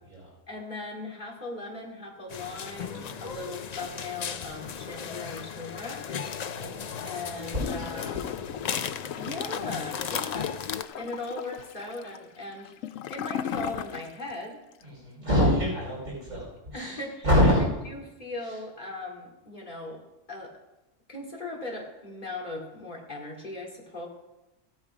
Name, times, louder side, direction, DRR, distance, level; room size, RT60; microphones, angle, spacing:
voice 1, 0.5-6.2 7.1-8.2 9.2-12.7 13.1-14.6 15.2-15.5 16.7-17.3 17.9-20.0 20.3-20.6 21.1-24.1, left 2 dB, 35° left, -1 dB, 2.7 m, -38 dB
sound 1, 2.3-10.8, left 7 dB, 60° left, 0.4 m, -36 dB
voice 2, 6.4-7.7 8.0-8.5 14.8-16.5 16.7-17.7, equal, 75° right, -4 dB, 5.1 m, -27 dB
Gurgling / Toilet flush, 7.6-14.4 14.7-14.8, left 9 dB, 85° left, 1.0 m, -37 dB
16.0 x 8.9 x 4.9 m, 1.0 s
omnidirectional pair, 1.3 m